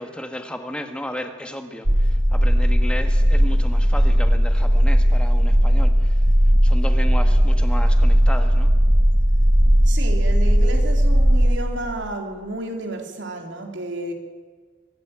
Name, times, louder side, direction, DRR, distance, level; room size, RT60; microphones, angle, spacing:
voice 1, 0.0-6.1 6.6-8.7, equal, 5° left, 6 dB, 1.5 m, -33 dB
sound 1, 1.8-11.6, equal, 45° right, 1.7 m, -16 dB
voice 2, 9.8-14.1, right 2 dB, 75° right, 3 dB, 3.3 m, -31 dB
24.0 x 13.5 x 8.9 m, 1.5 s
head